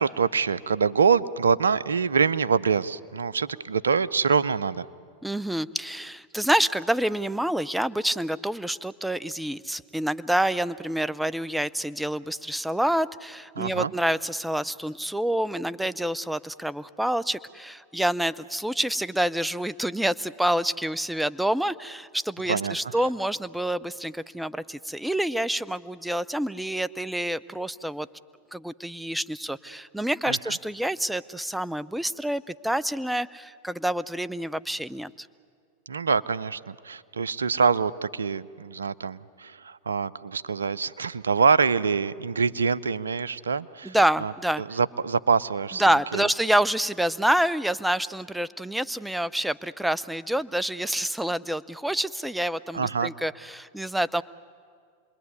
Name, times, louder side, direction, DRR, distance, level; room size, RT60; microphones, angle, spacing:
voice 1, 0.0-4.9 13.6-13.9 22.5-23.0 30.3-30.6 35.9-44.0 44.2-44.3 44.6-46.3 52.7-53.1, right 5 dB, 90° right, 17 dB, 0.6 m, -25 dB
voice 2, 5.2-28.1 28.5-35.3 43.8-44.6 45.8-54.2, right 1 dB, 5° right, 16 dB, 0.7 m, -27 dB
28.0 x 21.0 x 9.6 m, 2.1 s
hypercardioid pair, 100°, 0 cm